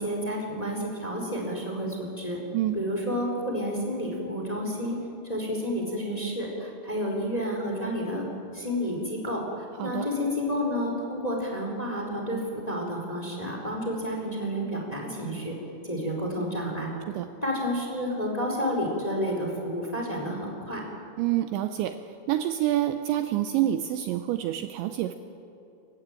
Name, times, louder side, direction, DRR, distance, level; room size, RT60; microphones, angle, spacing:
voice 1, 0.0-2.4 2.7-5.0 5.2-8.2 8.5-15.6 15.8-16.9 17.4-20.8, equal, 10° left, 0 dB, 3.7 m, -30 dB
voice 2, 9.7-10.1 17.1-17.3 21.2-25.1, right 12 dB, 80° right, 9 dB, 2.8 m, -27 dB
29.0 x 15.5 x 9.0 m, 2.7 s
omnidirectional pair, 5.6 m